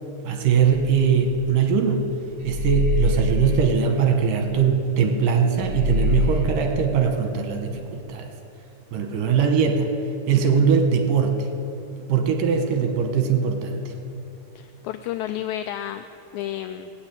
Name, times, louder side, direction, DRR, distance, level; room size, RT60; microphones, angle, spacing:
voice 1, 0.2-2.0 2.4-8.3 8.9-9.9 10.3-11.5 12.1-13.9, right 6 dB, 85° right, 5 dB, 2.7 m, -21 dB
sound 1, 0.6-2.0 2.4-5.3 5.6-6.5, left 1 dB, 55° right, 1.8 m, -25 dB
voice 2, 14.6-16.0 16.3-16.9, left 12 dB, 80° left, 8 dB, 1.8 m, -31 dB
18.0 x 7.2 x 9.0 m, 2.7 s
omnidirectional pair, 3.6 m